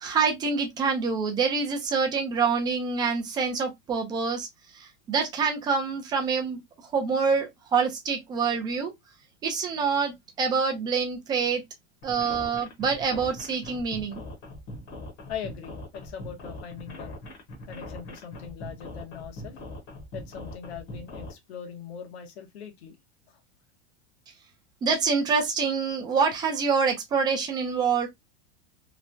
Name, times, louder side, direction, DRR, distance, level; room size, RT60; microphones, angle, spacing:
voice 1, 0.0-8.9 9.4-11.6 12.0-14.2 24.8-28.1, right 5 dB, 15° right, 0.4 m, -26 dB
sound 1, 12.0-21.3, left 1 dB, 35° left, 0.9 m, -41 dB
voice 2, 15.3-17.1 17.6-19.6 20.1-23.0 23.3-23.4, left 8 dB, 80° left, 1.0 m, -40 dB
3.1 x 2.1 x 2.5 m
supercardioid pair, 155°, 32 cm